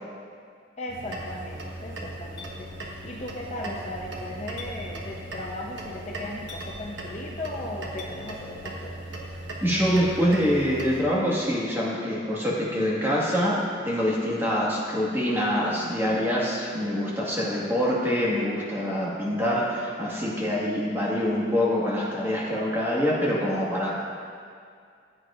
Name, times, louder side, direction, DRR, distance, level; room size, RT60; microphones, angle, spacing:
voice 1, 0.8-9.0, left 1 dB, 35° left, -1 dB, 0.7 m, -37 dB
sound 1, 0.9-11.0, right 1 dB, 70° right, 1.2 m, -38 dB
Chink clink, 2.4-2.5 4.6-4.7 6.5-6.7 8.0-8.1, left 5 dB, 65° left, 1.5 m, -41 dB
voice 2, 9.6-24.0, equal, 10° right, -6 dB, 1.6 m, -25 dB
16.5 x 7.8 x 2.5 m, 2.3 s
head